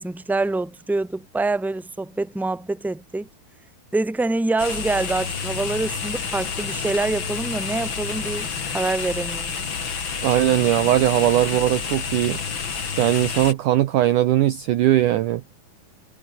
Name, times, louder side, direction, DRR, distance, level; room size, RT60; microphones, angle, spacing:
voice 1, 0.0-3.3 3.9-9.5, right 2 dB, ahead, 2.5 m, -25 dB
sound 1, 4.6-13.5, left 6 dB, 35° left, 2.6 m, -29 dB
voice 2, 10.2-12.4 13.0-15.4, right 13 dB, 70° right, 2.1 m, -19 dB
omnidirectional pair, 4.6 m